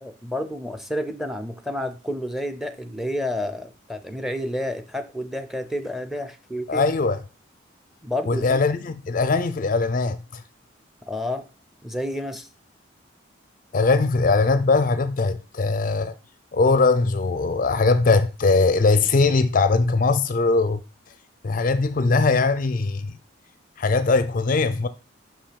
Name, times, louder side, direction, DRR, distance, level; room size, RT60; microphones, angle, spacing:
voice 1, 0.0-6.9 8.0-8.6 11.1-11.5 11.8-12.5, left 1 dB, ahead, 0.6 m, -30 dB
voice 2, 6.7-7.2 8.3-10.4 13.7-16.1 16.5-20.8 21.4-23.2 23.8-24.9, left 3 dB, 45° left, 0.4 m, -20 dB
5.8 x 5.5 x 5.1 m
head